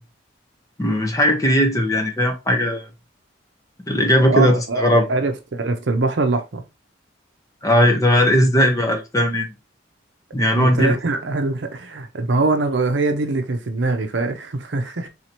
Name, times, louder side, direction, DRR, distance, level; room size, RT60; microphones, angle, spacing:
voice 1, 0.8-2.9 3.9-5.1 7.6-9.5 10.3-11.0, equal, 15° left, 0.7 m, -18 dB
voice 2, 4.3-6.6 10.5-15.1, right 3 dB, 65° right, 0.6 m, -23 dB
4.1 x 2.8 x 2.9 m
head